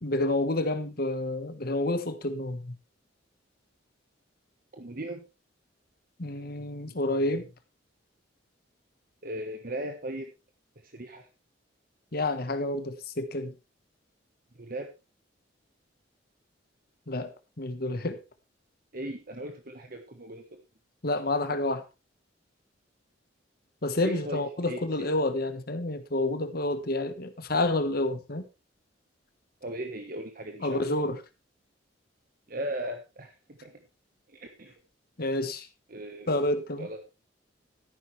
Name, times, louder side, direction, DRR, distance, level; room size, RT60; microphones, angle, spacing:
voice 1, 0.0-2.7 6.2-7.5 12.1-13.5 17.1-18.2 21.0-21.8 23.8-28.5 30.6-31.2 35.2-35.7 36.3-36.9, left 2 dB, 55° left, 9 dB, 1.4 m, -29 dB
voice 2, 4.7-5.3 9.2-10.3 10.8-11.3 14.5-14.9 18.9-20.4 24.0-25.1 29.6-30.9 32.5-33.8 34.3-34.8 35.9-36.3 36.8-37.0, right 1 dB, 50° right, 5 dB, 1.4 m, -38 dB
13.0 x 11.0 x 3.3 m, 0.26 s
head